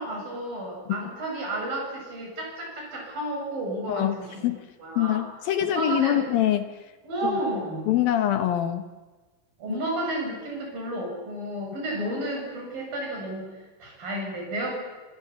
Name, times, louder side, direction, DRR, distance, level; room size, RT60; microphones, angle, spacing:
voice 1, 0.0-4.4 4.8-5.2 5.8-6.2 7.0-7.9 9.6-14.7, right 1 dB, 70° right, 0 dB, 9.0 m, -32 dB
voice 2, 5.0-6.8 7.2-7.4 7.9-8.9 9.7-9.8, left 11 dB, 75° left, 8 dB, 3.1 m, -24 dB
28.0 x 27.5 x 7.2 m, 1.3 s
omnidirectional pair, 4.2 m